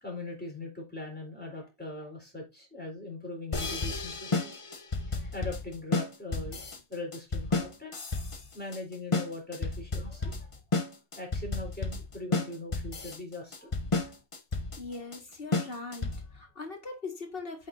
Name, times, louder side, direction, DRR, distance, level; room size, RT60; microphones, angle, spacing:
voice 1, 0.0-4.5 5.1-8.0 8.5-10.5 11.2-13.7 14.0-14.1 14.9-15.0, left 2 dB, 10° left, 3.6 m, -41 dB
sound 1, 3.5-16.4, left 3 dB, 30° left, 0.9 m, -32 dB
voice 2, 14.8-17.7, left 3 dB, 55° left, 2.0 m, -40 dB
8.4 x 5.8 x 2.7 m
omnidirectional pair, 1.2 m